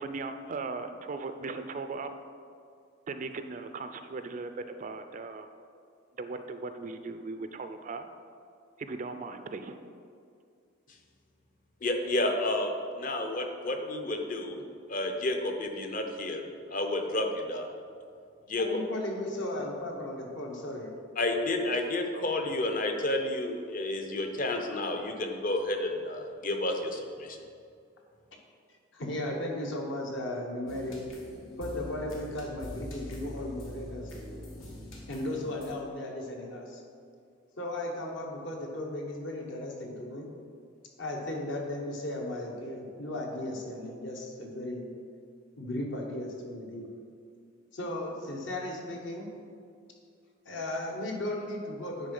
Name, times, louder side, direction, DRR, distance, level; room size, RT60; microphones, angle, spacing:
voice 1, 0.0-2.1 3.1-5.5 6.2-8.1 8.8-9.8, right 3 dB, 40° right, 8 dB, 0.4 m, -38 dB
voice 2, 11.8-12.7 13.0-14.6 14.9-17.7 18.5-18.7 21.2-27.4, left 2 dB, 45° left, 4 dB, 0.7 m, -31 dB
voice 3, 18.6-20.9 28.9-31.0 31.6-34.1 35.1-36.8 37.6-40.3 41.0-44.8 45.6-46.9 47.7-49.3 50.4-52.1, left 1 dB, 65° left, 0 dB, 1.1 m, -36 dB
sound 1, 30.7-35.7, equal, 80° left, 1.4 m, -43 dB
9.6 x 3.6 x 5.4 m, 2.3 s
head